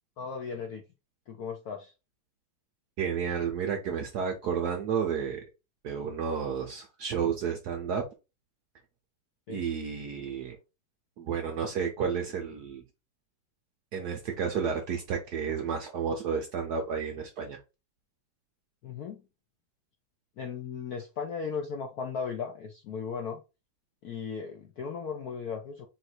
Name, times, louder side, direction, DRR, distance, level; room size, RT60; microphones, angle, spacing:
voice 1, 0.2-0.8 1.3-1.9 9.5-9.7 18.8-19.2 20.4-23.4 24.0-25.9, left 6 dB, 75° left, 0.9 m, -36 dB
voice 2, 3.0-5.4 5.8-8.0 9.5-10.6 11.2-12.8 13.9-17.6, right 6 dB, 65° right, 1.0 m, -31 dB
3.9 x 2.6 x 4.3 m
omnidirectional pair, 2.4 m